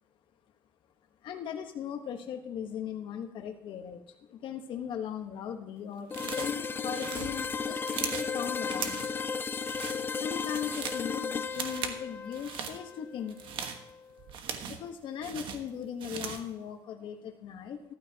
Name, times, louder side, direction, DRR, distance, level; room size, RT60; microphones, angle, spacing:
voice 1, 1.2-9.1 10.1-13.4 14.6-17.9, left 8 dB, 65° left, 4 dB, 1.2 m, -38 dB
sound 1, 6.1-13.9, left 5 dB, 25° left, 0.5 m, -35 dB
sound 2, 6.1-6.6 6.9-8.3 8.7-9.2 9.6-10.0 10.4-11.1 11.5-12.0 12.3-12.8 13.3-14.9 15.2-16.5, right 7 dB, 65° right, 1.3 m, -38 dB
14.0 x 12.5 x 2.9 m, 0.84 s
cardioid pair, 110°, 9 cm